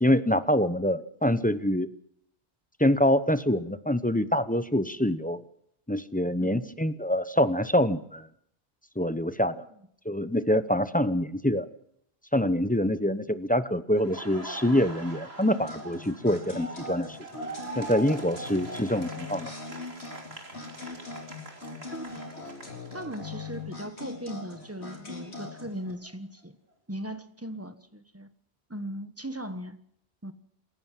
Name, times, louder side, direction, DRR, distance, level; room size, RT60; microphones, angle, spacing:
voice 1, 0.0-1.9 2.8-5.4 5.9-8.3 9.0-9.5 10.0-11.7 12.3-17.2 17.8-19.5, left 1 dB, 10° left, 13 dB, 0.7 m, -25 dB
Laughter, 13.9-23.8 24.1-26.1, right 2 dB, 65° right, 3.5 m, -43 dB
sound 1, 15.5-25.9, left 4 dB, 75° left, 4.5 m, -41 dB
voice 2, 22.9-26.6 26.9-28.3 28.7-29.8 30.2-30.3, right 1 dB, 15° right, 10 dB, 1.3 m, -38 dB
28.0 x 14.5 x 7.5 m, 0.70 s
omnidirectional pair, 1.1 m